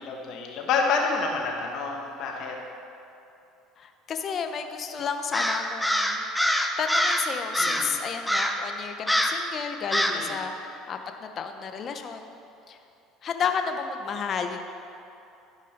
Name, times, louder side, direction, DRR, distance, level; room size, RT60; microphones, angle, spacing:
voice 1, 0.0-2.6 7.6-7.9 10.1-10.4, left 4 dB, 60° left, 0 dB, 1.6 m, -28 dB
voice 2, 3.8-6.2 6.8-12.4 12.7-12.8 13.2-14.6, left 6 dB, 45° left, 6 dB, 0.8 m, -32 dB
Crow, 5.3-7.3 7.5-7.9 8.3-8.6 9.1-9.4 9.9-10.2, equal, 5° left, 0.8 m, -25 dB
13.0 x 5.3 x 5.3 m, 2.7 s
supercardioid pair, 100°, 0 cm